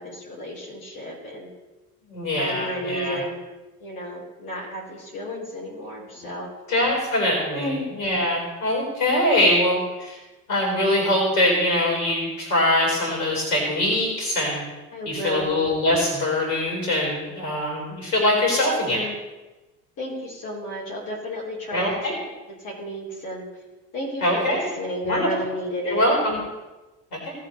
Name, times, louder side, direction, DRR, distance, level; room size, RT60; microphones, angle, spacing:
voice 1, 0.0-1.5 2.4-3.3 3.8-6.5 7.5-7.9 14.9-15.7 18.8-19.2 20.0-22.3 22.6-23.5 23.9-26.1, equal, 40° left, -4 dB, 3.6 m, -32 dB
voice 2, 2.1-3.2 6.2-6.3 6.7-10.2 10.5-14.6 15.1-19.0 21.7-22.2 24.2-24.7 25.0-25.3 25.9-26.4 27.1-27.3, left 1 dB, 70° left, -1 dB, 4.0 m, -23 dB
17.5 x 7.5 x 3.1 m, 1.1 s
figure-of-eight pair, 65°, 47 cm